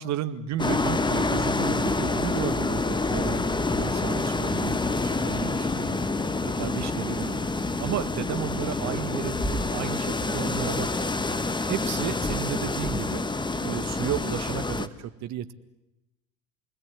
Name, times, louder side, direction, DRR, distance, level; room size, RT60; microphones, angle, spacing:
voice 1, 0.0-6.1 6.6-11.1 11.7-13.2 13.6-15.5, right 10 dB, 50° right, 11 dB, 1.9 m, -33 dB
sound 1, 0.6-14.9, left 3 dB, 10° left, 1.5 m, -27 dB
29.5 x 20.5 x 9.7 m, 0.99 s
hypercardioid pair, 75°, 37 cm